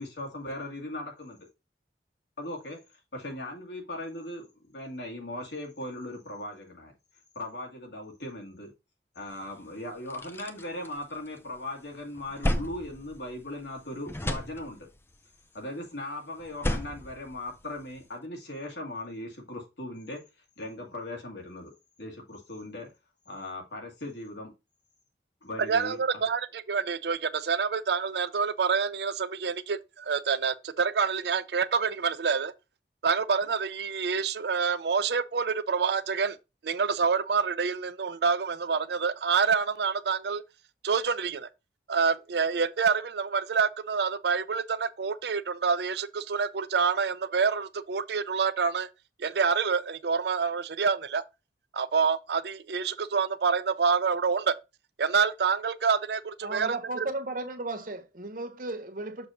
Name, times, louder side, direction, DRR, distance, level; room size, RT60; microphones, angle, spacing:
voice 1, 0.0-1.5 2.4-2.8 3.1-6.9 7.4-8.7 9.2-14.9 15.5-20.2 20.6-21.7 22.0-22.9 23.3-24.5 25.4-26.0, left 1 dB, 80° left, 2.3 m, -38 dB
sound 1, 9.4-9.5 9.9-11.6 11.9-13.8 14.0-15.1 16.4-18.0, left 1 dB, 15° left, 0.5 m, -34 dB
voice 2, 25.7-32.5 33.0-36.4 36.6-40.4 40.8-41.5 41.9-48.9 49.2-51.2 51.7-54.5 55.0-57.1, right 5 dB, 65° right, 0.5 m, -27 dB
voice 3, 56.4-59.3, right 2 dB, 50° right, 1.0 m, -35 dB
6.7 x 2.8 x 5.7 m
head